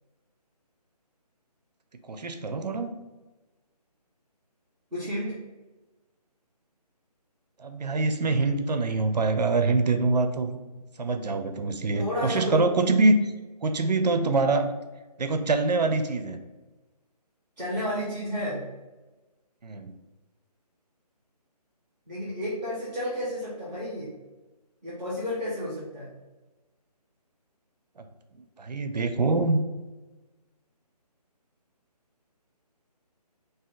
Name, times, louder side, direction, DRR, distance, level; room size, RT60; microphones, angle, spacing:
voice 1, 2.0-2.9 7.6-10.6 11.0-13.3 13.6-14.7 15.2-16.4 19.6-19.9 28.6-29.6, right 3 dB, 80° right, 8 dB, 0.6 m, -24 dB
voice 2, 4.9-5.4 11.9-12.7 17.6-18.7 22.1-24.1 24.8-26.1, equal, ahead, -22 dB, 0.8 m, -31 dB
4.3 x 2.8 x 3.8 m, 1.1 s
hypercardioid pair, 170°, 21 cm